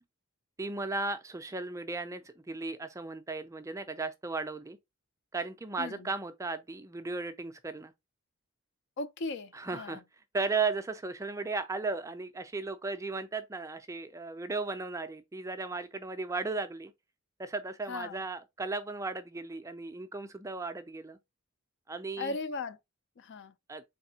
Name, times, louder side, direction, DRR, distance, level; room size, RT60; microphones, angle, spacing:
voice 1, 0.6-4.8 5.3-7.9 9.5-10.0 10.3-16.9 17.4-21.2 21.9-22.4 23.7-23.8, right 3 dB, 15° right, 0.4 m, -35 dB
voice 2, 5.8-6.1 9.0-10.0 17.9-18.2 22.2-22.8 23.2-23.5, left 3 dB, 55° left, 0.4 m, -37 dB
4.1 x 3.5 x 2.7 m
head